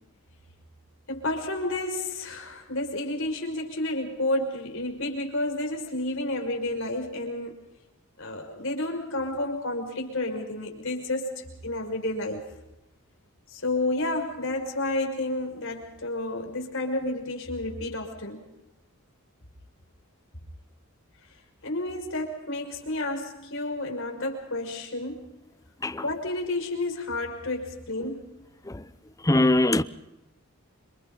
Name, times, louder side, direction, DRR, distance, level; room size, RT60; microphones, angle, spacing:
voice 1, 1.1-7.6 8.2-12.4 13.5-18.4 21.6-25.3 26.0-28.3, left 2 dB, 60° left, 6.0 m, -30 dB
voice 2, 29.2-29.8, left 1 dB, 15° left, 0.8 m, -21 dB
30.0 x 27.0 x 4.0 m
head